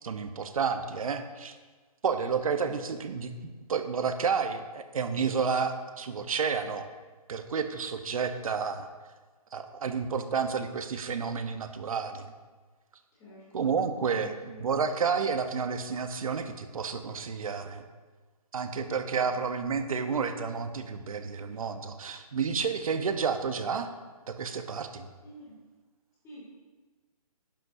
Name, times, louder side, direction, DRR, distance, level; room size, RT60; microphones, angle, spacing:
voice 1, 0.0-1.6 2.0-6.9 7.3-8.9 9.5-12.3 13.5-14.3 14.6-17.8 18.5-23.9 24.3-25.1, right 6 dB, 60° right, 8 dB, 1.0 m, -30 dB
voice 2, 13.1-13.8 14.1-14.6 25.2-25.5 26.2-26.5, left 1 dB, 15° left, -6 dB, 3.0 m, -49 dB
11.5 x 10.5 x 2.7 m, 1.4 s
hypercardioid pair, 150°, 20 cm